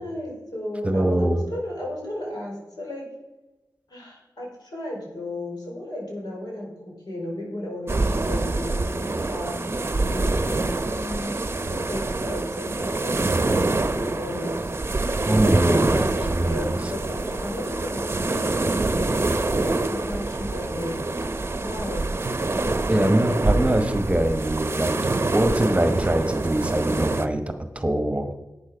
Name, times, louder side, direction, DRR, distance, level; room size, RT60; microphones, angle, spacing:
voice 1, 0.0-3.1 3.9-11.3 11.7-14.6 15.4-21.3 21.6-22.1 22.6-23.8, left 1 dB, 80° left, -3 dB, 4.9 m, -34 dB
voice 2, 0.8-1.4 15.3-16.0 16.3-16.9 22.9-28.3, right 1 dB, 20° right, 7 dB, 1.1 m, -23 dB
sound 1, 7.9-27.3, right 2 dB, 35° right, 0.7 m, -25 dB
11.5 x 8.9 x 5.1 m, 1.1 s
wide cardioid pair, 105°, 7 cm